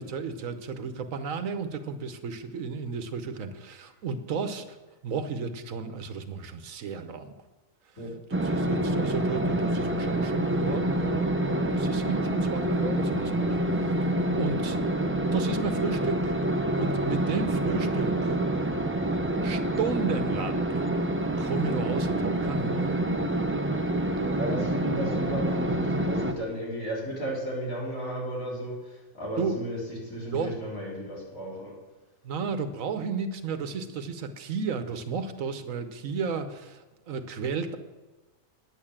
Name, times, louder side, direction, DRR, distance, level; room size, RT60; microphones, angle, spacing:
voice 1, 0.0-4.8 5.0-7.3 8.4-13.9 14.3-14.8 15.3-16.4 16.7-18.4 19.4-20.9 21.4-23.0 29.4-29.6 30.3-30.5 32.2-37.8, right 5 dB, 75° right, 9 dB, 1.3 m, -33 dB
sound 1, 8.3-26.3, right 1 dB, 15° right, 0.6 m, -27 dB
voice 2, 24.4-31.7, right 1 dB, 75° left, -5 dB, 4.4 m, -34 dB
10.0 x 8.8 x 7.3 m, 1.1 s
omnidirectional pair, 1.4 m